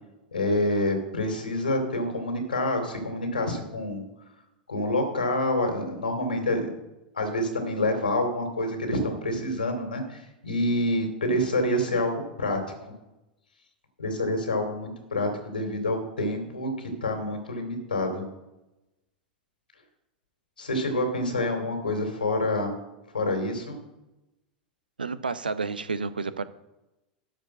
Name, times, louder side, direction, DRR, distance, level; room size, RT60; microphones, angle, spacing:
voice 1, 0.3-4.0 4.7-6.7 7.1-12.9 14.0-18.2 20.6-22.7 23.1-23.8, left 1 dB, 75° left, 5 dB, 2.6 m, -27 dB
voice 2, 25.0-26.4, right 4 dB, 75° right, 15 dB, 0.6 m, -30 dB
12.0 x 5.1 x 7.2 m, 0.98 s
figure-of-eight pair, 90°, 5 cm